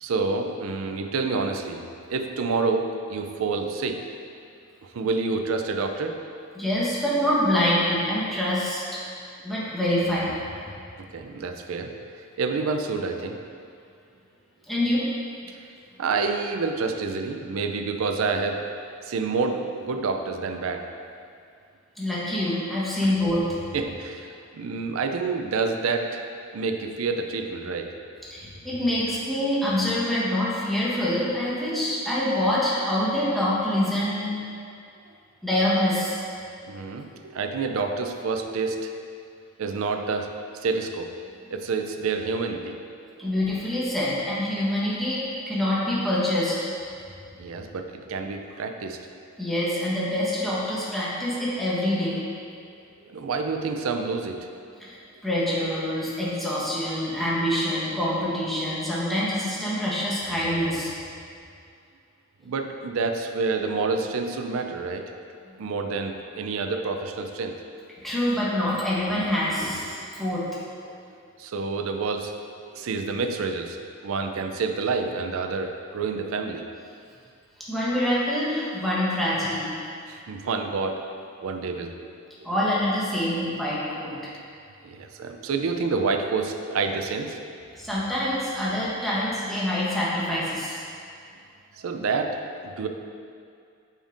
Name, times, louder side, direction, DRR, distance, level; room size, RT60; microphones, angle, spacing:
voice 1, 0.0-4.1 4.8-6.2 11.0-13.5 15.5-15.6 16.0-18.7 19.0-20.9 23.0-23.1 23.7-26.2 26.5-27.9 35.1-35.2 36.6-38.9 39.6-41.2 41.5-43.3 47.4-49.1 53.0-54.5 62.4-65.1 65.6-67.6 70.9-71.0 71.4-73.8 74.0-76.7 80.1-81.1 81.4-82.0 82.4-82.5 84.8-87.6 91.7-92.9, right 4 dB, 75° right, 5 dB, 0.4 m, -28 dB
voice 2, 6.5-9.0 9.4-10.4 14.7-15.1 22.0-23.6 28.3-34.3 35.4-36.2 43.2-46.6 49.4-52.2 54.8-60.9 68.0-70.5 77.7-79.7 82.4-84.2 87.8-90.8, left 1 dB, ahead, -9 dB, 1.1 m, -25 dB
7.1 x 5.2 x 2.6 m, 2.4 s
head